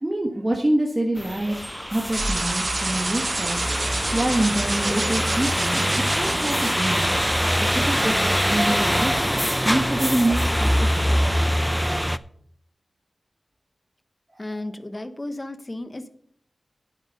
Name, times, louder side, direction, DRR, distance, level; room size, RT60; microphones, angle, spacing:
voice 1, 0.0-1.6 1.9-3.6 4.1-5.9 6.1-7.1 7.6-9.3 9.6-11.2 14.3-14.4, right 1 dB, 25° right, 0 dB, 1.5 m, -26 dB
sound 1, 1.2-12.2, equal, ahead, 0.5 m, -23 dB
sound 2, 2.1-10.1, right 3 dB, 55° right, 1.4 m, -31 dB
sound 3, 3.1-11.0, left 1 dB, 65° left, 3.9 m, -43 dB
voice 2, 14.4-16.1, left 1 dB, 30° left, 11 dB, 1.1 m, -34 dB
10.5 x 8.2 x 5.2 m, 0.64 s
wide cardioid pair, 60°, 0 cm